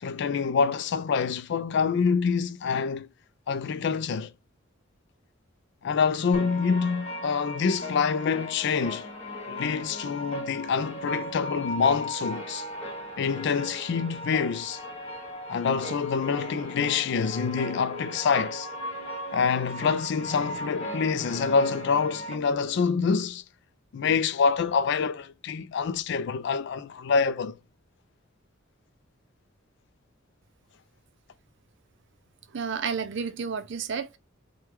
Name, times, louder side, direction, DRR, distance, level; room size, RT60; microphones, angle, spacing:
voice 1, 0.0-3.1 3.5-4.3 5.8-9.1 9.5-12.7 13.2-14.8 15.5-18.7 19.3-23.4 23.9-27.6, left 5 dB, 60° left, 0.4 m, -26 dB
sound 1, 6.3-22.3, equal, 30° left, 1.2 m, -37 dB
voice 2, 32.5-34.2, right 6 dB, 60° right, 0.5 m, -31 dB
4.5 x 2.2 x 3.3 m
head